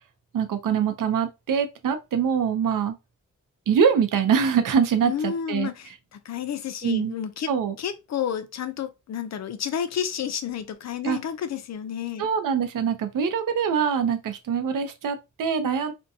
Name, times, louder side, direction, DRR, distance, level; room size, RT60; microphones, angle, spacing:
voice 1, 0.3-3.0 3.7-5.7 6.8-7.2 7.5-7.8 11.0-11.2 12.2-15.9, right 7 dB, 80° right, 0.6 m, -24 dB
voice 2, 5.0-7.5 7.8-12.3, left 9 dB, 55° left, 0.4 m, -31 dB
2.6 x 2.1 x 2.6 m
wide cardioid pair, 135°, 32 cm